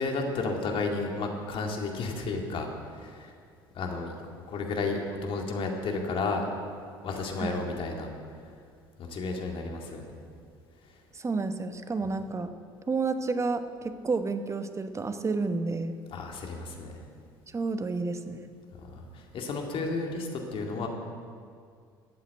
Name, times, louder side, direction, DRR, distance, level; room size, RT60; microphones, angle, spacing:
voice 1, 0.0-3.3 3.7-4.1 4.5-6.5 7.0-8.1 9.0-10.1 16.1-16.9 18.9-20.9, left 3 dB, 50° left, 2 dB, 2.2 m, -32 dB
voice 2, 11.1-12.5 12.9-16.0 17.5-18.4, right 4 dB, 25° right, 9 dB, 1.1 m, -30 dB
13.5 x 8.4 x 7.7 m, 2.2 s
hypercardioid pair, 65°, 12 cm